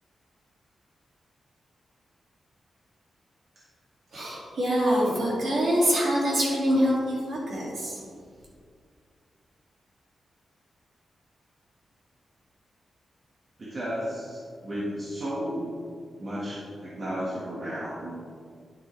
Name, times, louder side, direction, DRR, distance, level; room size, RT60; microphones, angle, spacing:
voice 1, 4.1-8.0, equal, 55° right, -4 dB, 2.4 m, -25 dB
voice 2, 13.6-15.7 16.2-18.1, equal, 35° right, -7 dB, 1.6 m, -33 dB
10.0 x 7.6 x 3.3 m, 2.1 s
wide cardioid pair, 165°, 0 cm